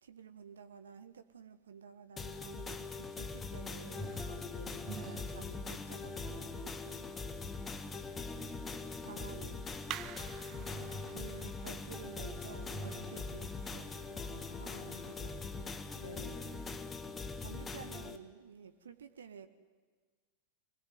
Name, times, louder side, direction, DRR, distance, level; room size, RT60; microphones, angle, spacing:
voice 1, 0.0-4.2 5.0-7.1 7.9-8.0 8.3-9.7 11.1-15.8 17.4-19.5, right 7 dB, 65° right, 10 dB, 1.3 m, -52 dB
sound 1, 2.2-18.2, left 4 dB, 15° left, 1.5 m, -42 dB
sound 2, 3.8-7.6 8.6-8.7 10.4-13.5, right 1 dB, 5° right, 6.2 m, -48 dB
voice 2, 4.2-4.9 14.2-15.3 15.9-16.6, left 2 dB, 80° left, 3 dB, 3.3 m, -51 dB
sound 3, 6.5-16.8, right 13 dB, 35° right, 0.9 m, -52 dB
25.5 x 18.5 x 9.3 m, 1.5 s
figure-of-eight pair, 90°, 0 cm